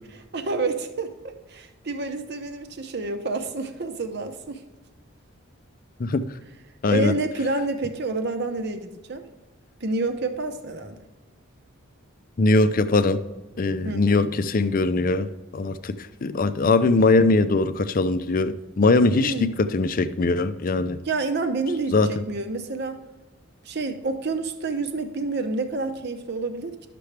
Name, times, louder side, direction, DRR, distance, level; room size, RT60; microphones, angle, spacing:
voice 1, 0.3-4.6 6.9-9.2 9.8-11.0 13.8-14.3 19.1-19.5 21.0-23.0 23.6-26.9, right 3 dB, 50° right, 7 dB, 0.8 m, -28 dB
voice 2, 6.8-7.1 12.4-13.2 13.6-15.3 15.5-15.9 16.2-21.0 21.9-22.1, left 3 dB, 40° left, 12 dB, 0.5 m, -21 dB
11.5 x 6.8 x 3.3 m, 1.1 s
head